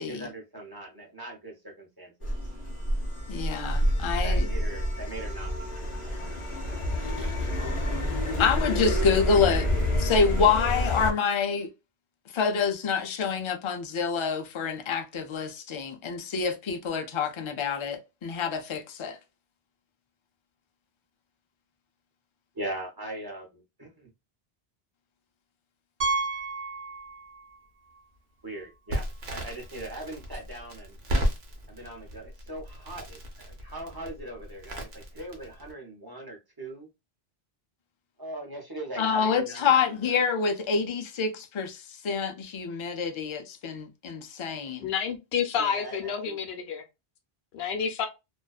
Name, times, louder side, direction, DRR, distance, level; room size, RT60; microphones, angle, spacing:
voice 1, 0.0-2.3 4.2-5.9 7.0-7.8 22.5-24.1 28.4-31.0 31.7-36.9 38.2-39.9 45.5-46.4, right 1 dB, 25° right, 0.7 m, -40 dB
sound 1, 2.2-11.1, left 1 dB, 35° left, 0.7 m, -28 dB
voice 2, 3.3-4.5 8.4-9.7 10.0-11.7 12.3-19.2 39.0-44.9, left 5 dB, 55° left, 0.3 m, -27 dB
Piano, 26.0-27.6 27.9-28.0 28.6-28.7 29.0-29.1 31.1-31.2, right 3 dB, 60° right, 0.8 m, -31 dB
Crackle, 28.9-35.7, equal, 80° right, 1.0 m, -34 dB
voice 3, 44.8-46.8 47.5-48.1, left 7 dB, 80° left, 0.8 m, -29 dB
2.5 x 2.2 x 2.2 m
omnidirectional pair, 1.0 m